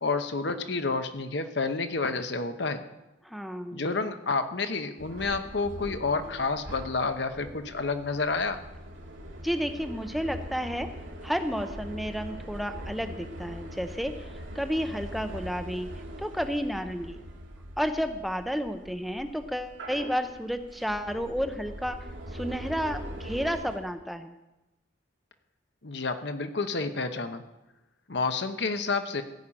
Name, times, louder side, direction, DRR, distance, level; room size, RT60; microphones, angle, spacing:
voice 1, 0.0-2.8 3.7-8.6 25.8-27.4 28.1-29.2, left 4 dB, 65° left, 9 dB, 0.9 m, -29 dB
voice 2, 3.2-3.8 9.4-10.9 11.2-14.1 14.5-15.9 16.2-17.2 17.8-22.0 22.3-24.4, equal, ahead, 7 dB, 0.6 m, -31 dB
sound 1, 5.0-23.8, equal, 85° right, 2.2 m, -42 dB
16.0 x 5.6 x 8.8 m, 0.99 s
head